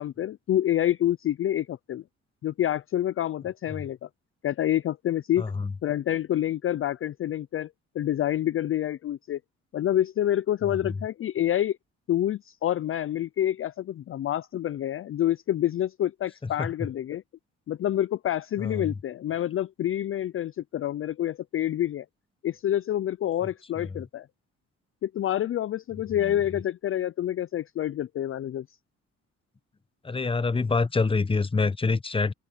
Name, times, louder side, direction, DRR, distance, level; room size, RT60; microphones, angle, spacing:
voice 1, 0.0-2.0 2.4-4.1 4.4-5.4 5.8-7.7 7.9-9.4 9.7-11.8 12.1-17.2 17.7-22.1 22.4-24.3 25.0-28.8, left 12 dB, 45° left, 0.5 m, -27 dB
voice 2, 5.4-5.7 10.6-11.0 16.4-16.9 18.6-19.0 23.8-23.9 26.2-26.3 30.0-32.3, left 4 dB, 20° left, 0.9 m, -27 dB
open air
cardioid pair, 90°, 30 cm